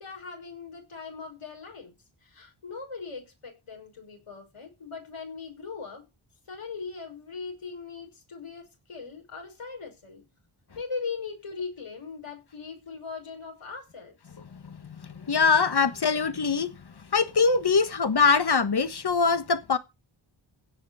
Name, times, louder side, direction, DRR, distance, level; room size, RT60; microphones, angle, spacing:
voice 1, 0.0-1.9 2.2-6.0 6.5-10.2 10.8-14.2 16.1-16.3, left 5 dB, 85° left, 6.2 m, -39 dB
voice 2, 15.3-16.7 17.1-19.8, left 5 dB, 50° left, 1.5 m, -22 dB
16.5 x 6.7 x 4.9 m
cardioid pair, 40°, 50 cm